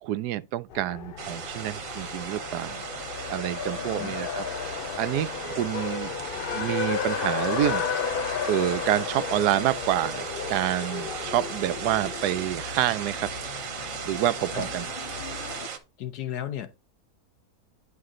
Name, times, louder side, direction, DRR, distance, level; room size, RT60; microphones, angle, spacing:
voice 1, 0.0-2.8 3.3-4.4 5.0-6.1 6.5-7.8 8.5-13.3 14.0-14.9, right 13 dB, 85° right, 1.1 m, -28 dB
Race car auto racing, 0.7-15.7, left 7 dB, 60° left, 0.6 m, -34 dB
sound 1, 1.2-15.8, right 7 dB, 60° right, 1.3 m, -37 dB
voice 2, 16.0-16.7, left 11 dB, 90° left, 1.5 m, -34 dB
9.6 x 5.7 x 3.7 m
omnidirectional pair, 1.7 m